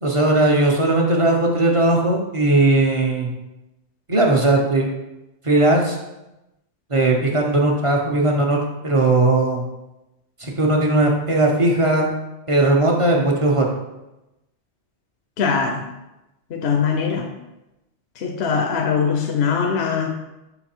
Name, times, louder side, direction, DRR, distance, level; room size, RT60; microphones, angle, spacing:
voice 1, 0.0-3.3 4.1-4.9 5.4-6.0 6.9-9.6 10.4-12.1 12.5-13.7, right 2 dB, 30° right, 0 dB, 0.7 m, -18 dB
voice 2, 15.4-15.8 16.5-17.3 18.2-20.2, left 6 dB, 65° left, 3 dB, 0.9 m, -21 dB
5.6 x 3.9 x 4.4 m, 0.95 s
omnidirectional pair, 1.2 m